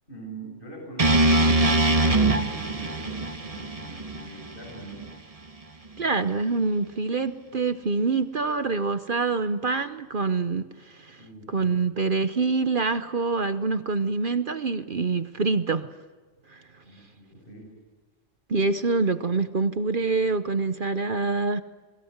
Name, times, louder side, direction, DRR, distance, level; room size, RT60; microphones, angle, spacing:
voice 1, 0.1-1.7 2.0-5.1 11.1-11.7 16.8-17.7, right 2 dB, 40° left, 0 dB, 7.3 m, -43 dB
sound 1, 1.0-5.1, right 2 dB, 30° right, 1.6 m, -23 dB
voice 2, 6.0-15.9 16.5-16.6 18.5-21.6, right 4 dB, 45° right, 10 dB, 1.0 m, -26 dB
29.0 x 21.5 x 8.1 m, 1.4 s
omnidirectional pair, 1.3 m